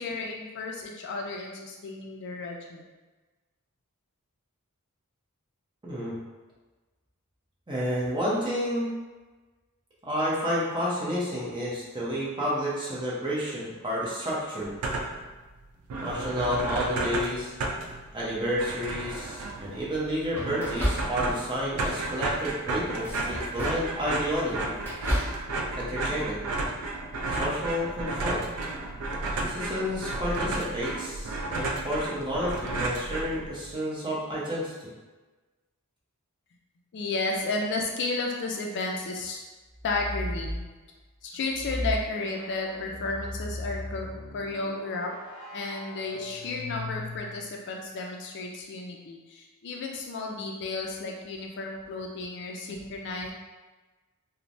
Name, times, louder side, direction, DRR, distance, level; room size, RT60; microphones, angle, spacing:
voice 1, 0.0-2.8 36.9-39.4 39.8-40.6 41.2-44.1 44.3-45.1 45.5-53.3, left 3 dB, 55° left, 0 dB, 0.4 m, -33 dB
voice 2, 5.8-6.1 7.7-8.9 10.0-14.7 16.0-17.5 18.1-24.7 25.7-26.4 27.2-28.4 29.4-34.7, equal, 20° right, -7 dB, 0.7 m, -30 dB
sound 1, 14.6-15.3 15.6-15.7 15.9-33.7, right 2 dB, 85° right, 0.4 m, -33 dB
sound 2, 19.0-19.4 20.3-21.6 21.9-22.3 22.9-24.0 24.3-25.4, equal, 10° left, 0.6 m, -33 dB
sound 3, 39.7-40.7 41.5-47.5, left 1 dB, 30° left, 1.4 m, -37 dB
3.1 x 2.1 x 2.6 m, 1.2 s
head